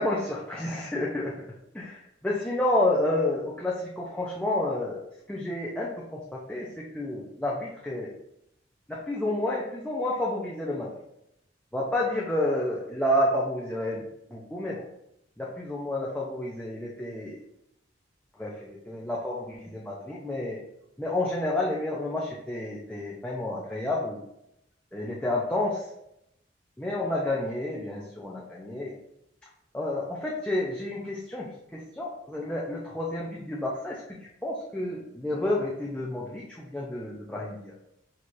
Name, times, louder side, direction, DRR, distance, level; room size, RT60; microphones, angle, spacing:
voice 1, 0.0-1.3 1.7-8.1 8.9-10.9 11.7-14.0 14.3-14.8 15.4-17.4 18.3-20.6 21.0-24.2 24.9-25.9 26.8-28.9 29.7-34.0 34.4-37.8, left 1 dB, 5° left, -5 dB, 0.5 m, -30 dB
6.3 x 2.9 x 2.5 m, 0.80 s
head